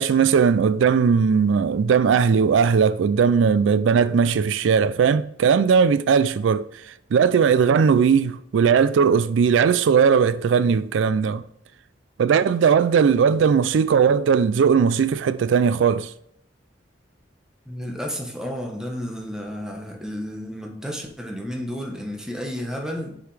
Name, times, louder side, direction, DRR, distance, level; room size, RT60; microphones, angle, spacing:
voice 1, 0.0-11.4 12.2-16.1, right 6 dB, 85° right, 0.3 m, -18 dB
voice 2, 17.7-23.2, equal, 5° right, 1.1 m, -32 dB
6.6 x 5.0 x 3.3 m
head